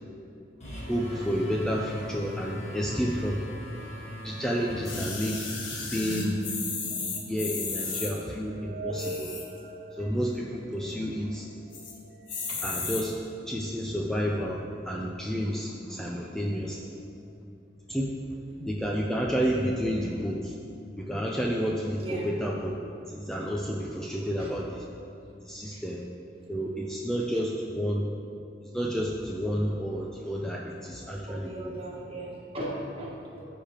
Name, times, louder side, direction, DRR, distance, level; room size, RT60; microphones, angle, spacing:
sound 1, 0.6-6.0, equal, 35° left, 1.5 m, -38 dB
voice 1, 0.9-3.4 4.2-5.4 5.7-6.4 7.3-9.3 10.0-11.4 12.6-13.2 13.5-16.8 17.9-18.1 18.7-20.5 21.0-22.7 23.1-24.8 25.4-26.0 26.5-28.1 28.7-31.7, equal, 5° left, -2 dB, 0.4 m, -30 dB
sound 2, 4.8-8.1 8.9-9.6 10.1-10.2 10.3-10.4 10.8-11.2 11.7-11.9 12.3-13.0 13.7-13.8, left 4 dB, 80° left, 1.3 m, -34 dB
sound 3, 5.5-12.9, right 1 dB, 50° right, 0.6 m, -41 dB
voice 2, 10.7-11.1 12.5-12.6 15.7-16.2 16.8-17.1 18.5-18.7 22.0-22.3 24.4-24.5 25.6-25.8 27.3-27.4 31.3-33.4, right 1 dB, 30° right, -4 dB, 1.5 m, -39 dB
14.5 x 4.9 x 3.0 m, 2.6 s
head